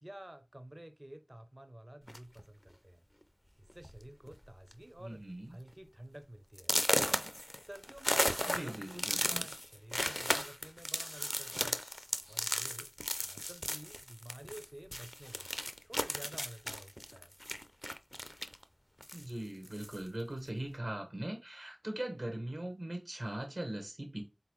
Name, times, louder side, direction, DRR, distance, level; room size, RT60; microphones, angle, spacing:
voice 1, 0.0-3.0 3.6-5.2 5.5-6.7 7.6-11.8 12.3-12.9 13.2-15.4 15.8-17.3, right 1 dB, 35° right, 0.6 m, -51 dB
sound 1, 2.1-2.4 3.2-3.3 3.7-4.0 4.3-4.7 5.1-5.2 5.7-5.8 6.6-14.6 14.9-18.6 19.0-20.0, equal, 15° left, 0.4 m, -35 dB
voice 2, 5.0-5.6 8.5-9.5 19.1-24.2, right 1 dB, 65° right, 1.0 m, -40 dB
3.8 x 3.7 x 3.0 m
wide cardioid pair, 40°, 0 cm